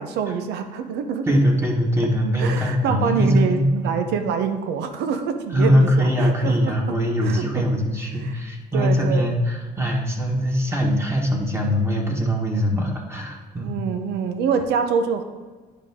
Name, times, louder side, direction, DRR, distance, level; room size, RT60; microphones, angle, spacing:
voice 1, 0.0-1.4 2.4-6.7 7.2-7.7 8.2-8.4 8.7-9.3 13.6-15.2, right 6 dB, 80° right, 8 dB, 0.8 m, -25 dB
voice 2, 1.3-3.9 5.5-13.8, equal, 15° right, -1 dB, 1.5 m, -21 dB
10.0 x 5.2 x 3.6 m, 1.4 s
cardioid pair, 110°, 17 cm